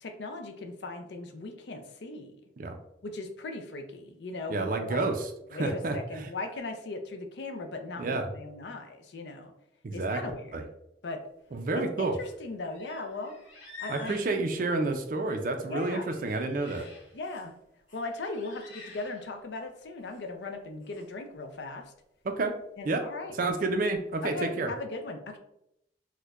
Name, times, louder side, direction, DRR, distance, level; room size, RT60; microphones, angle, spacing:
voice 1, 0.0-2.4 3.0-5.0 5.5-9.5 9.9-10.6 11.0-11.2 11.7-13.3 13.8-14.2 15.7-16.2 17.1-17.5 17.9-21.9 22.8-23.3 24.2-25.4, left 3 dB, 60° left, 5 dB, 0.4 m, -38 dB
voice 2, 4.5-6.3 8.0-8.3 9.8-10.2 10.5-10.6 11.5-12.2 13.9-16.8 22.2-22.6 22.8-23.1 23.3-24.7, right 3 dB, 45° right, 5 dB, 0.4 m, -30 dB
sound 1, 11.7-12.4 12.6-15.4 15.8-17.5 17.9-19.6 19.9-20.2 20.8-21.1, left 4 dB, 80° left, 0.9 m, -50 dB
4.3 x 2.2 x 2.4 m, 0.79 s
head